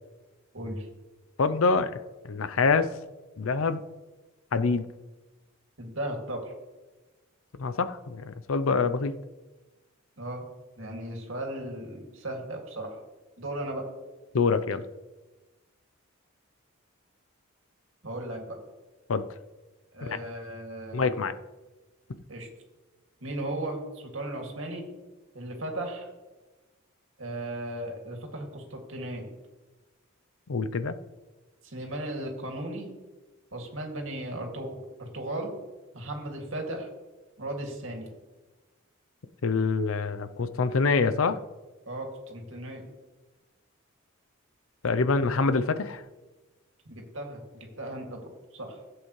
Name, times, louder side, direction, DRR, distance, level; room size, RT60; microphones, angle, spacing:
voice 1, 0.5-0.9 5.8-6.5 10.2-10.4 10.8-13.0 13.4-13.9 18.0-18.6 19.9-21.1 22.3-22.5 23.2-24.8 25.3-26.1 27.2-29.3 31.6-32.9 33.5-35.6 35.9-36.9 37.4-38.1 41.9-42.8 46.9-48.8, right 1 dB, 65° right, 1 dB, 2.4 m, -36 dB
voice 2, 1.4-2.0 2.2-2.9 3.4-3.8 4.5-4.9 7.6-9.1 14.3-14.8 19.1-19.2 20.0-20.2 20.9-21.3 30.5-31.0 39.4-41.4 44.8-46.0, left 4 dB, 75° left, 12 dB, 0.6 m, -25 dB
15.5 x 8.0 x 3.2 m, 1.2 s
head